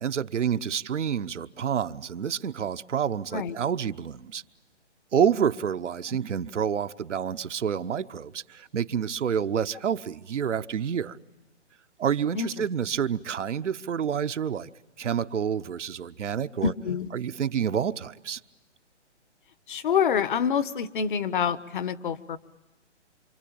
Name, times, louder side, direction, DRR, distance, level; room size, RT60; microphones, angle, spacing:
voice 1, 0.0-4.4 5.1-11.2 12.0-14.7 15.0-16.7 17.1-18.4, right 8 dB, 80° right, 9 dB, 1.0 m, -28 dB
voice 2, 16.6-17.1 19.7-22.4, left 7 dB, 45° left, 14 dB, 1.1 m, -26 dB
28.0 x 25.0 x 8.6 m, 1.1 s
hypercardioid pair, 155°, 35 cm